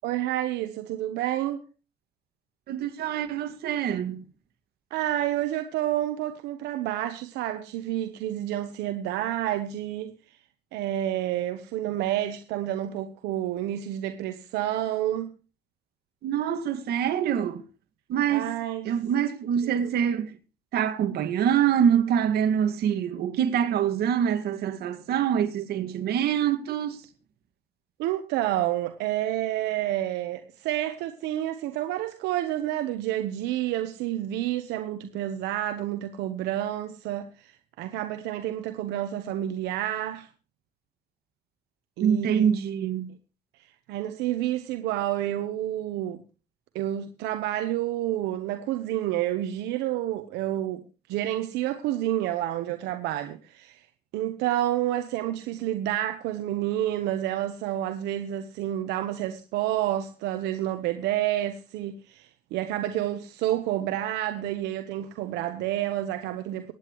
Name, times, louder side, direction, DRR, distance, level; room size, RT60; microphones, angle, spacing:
voice 1, 0.0-1.6 4.9-10.4 10.7-15.3 18.3-18.9 19.8-19.9 28.0-40.3 42.0-42.5 43.9-46.2 46.7-50.8 51.1-53.9 54.1-66.7, right 13 dB, 90° right, 1.1 m, -29 dB
voice 2, 2.7-4.2 16.2-17.6 18.1-18.5 18.8-20.4 20.7-27.0 42.0-43.1, right 9 dB, 70° right, 2.1 m, -25 dB
23.5 x 9.6 x 3.1 m
cardioid pair, 110°, 17 cm